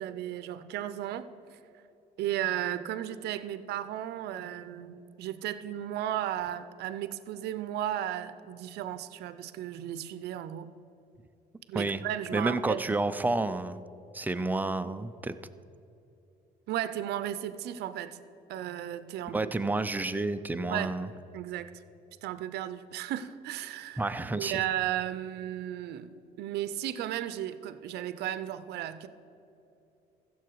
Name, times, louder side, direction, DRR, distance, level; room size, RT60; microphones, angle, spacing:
voice 1, 0.0-1.6 2.2-10.7 11.7-13.1 16.7-18.2 18.5-19.5 20.7-21.0 21.3-21.7 22.2-24.0 24.4-26.1 26.4-29.1, right 12 dB, 75° right, 13 dB, 0.6 m, -35 dB
voice 2, 12.3-13.8 14.1-15.3 19.3-21.1 24.0-24.6, right 2 dB, 10° right, 10 dB, 0.5 m, -30 dB
15.0 x 7.1 x 4.6 m, 2.9 s
cardioid pair, 110°, 17 cm